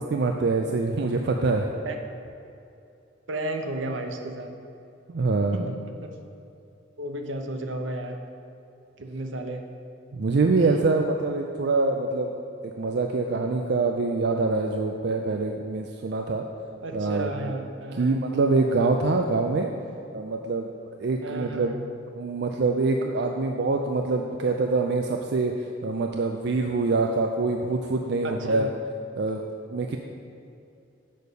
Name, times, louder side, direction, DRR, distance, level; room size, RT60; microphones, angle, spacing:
voice 1, 0.0-1.7 5.1-5.7 10.1-12.3 12.6-16.5 16.9-17.5 17.9-19.7 20.1-20.7 21.0-21.7 22.2-28.7 29.2-29.4 29.7-30.0, right 3 dB, 60° right, 3 dB, 0.4 m, -25 dB
voice 2, 3.3-4.5 5.5-5.6 6.0-6.1 7.0-8.2 9.0-9.6 10.6-10.7 16.8-18.2 21.2-21.8 28.2-28.7, right 1 dB, 80° right, 5 dB, 0.8 m, -33 dB
6.4 x 5.2 x 6.8 m, 2.7 s
head